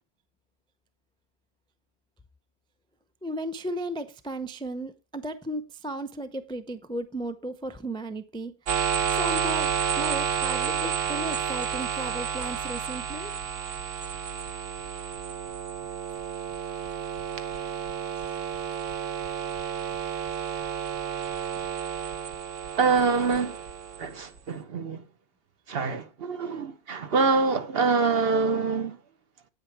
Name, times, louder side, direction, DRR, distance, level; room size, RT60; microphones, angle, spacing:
voice 1, 3.2-8.6 9.1-13.3, right 1 dB, 5° left, 0.4 m, -35 dB
sound 1, 8.7-24.4, right 8 dB, 80° right, 1.3 m, -31 dB
voice 2, 22.8-23.6 24.0-25.0 25.7-29.0, right 4 dB, 55° right, 1.0 m, -25 dB
9.0 x 8.9 x 4.5 m
omnidirectional pair, 1.3 m